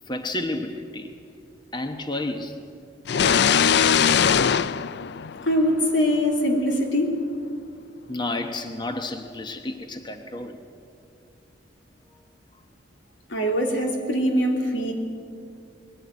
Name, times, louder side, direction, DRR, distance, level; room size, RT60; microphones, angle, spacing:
voice 1, 0.1-1.1 1.7-2.6 8.1-10.6, left 2 dB, 25° left, 6 dB, 1.0 m, -31 dB
sound 1, 3.1-5.9, left 7 dB, 60° left, 0.4 m, -20 dB
voice 2, 5.4-7.2 13.3-14.9, equal, 80° left, 2 dB, 3.2 m, -22 dB
21.5 x 15.0 x 9.3 m, 2.4 s
head